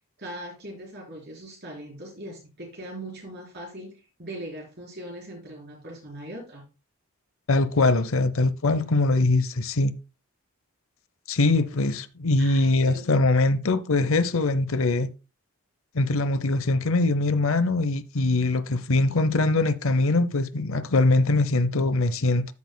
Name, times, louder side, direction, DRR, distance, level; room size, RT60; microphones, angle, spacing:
voice 1, 0.2-6.6 12.4-13.0, right 1 dB, 50° right, 4.1 m, -40 dB
voice 2, 7.5-9.9 11.3-15.1 15.9-22.5, left 2 dB, 70° left, 0.7 m, -22 dB
13.5 x 6.5 x 2.2 m
head